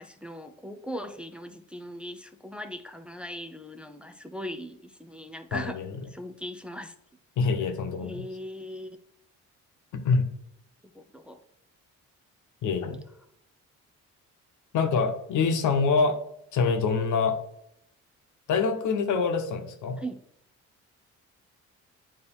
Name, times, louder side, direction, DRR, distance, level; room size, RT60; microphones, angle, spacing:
voice 1, 0.0-5.8 6.1-6.9 8.0-9.0 10.9-11.4 20.0-20.2, equal, 5° right, 6 dB, 0.5 m, -39 dB
voice 2, 5.5-6.0 7.4-8.2 9.9-10.3 12.6-13.0 14.7-16.2 16.5-17.4 18.5-20.0, left 5 dB, 80° left, 6 dB, 1.1 m, -25 dB
9.0 x 3.1 x 4.3 m, 0.74 s
cardioid pair, 90°, 30 cm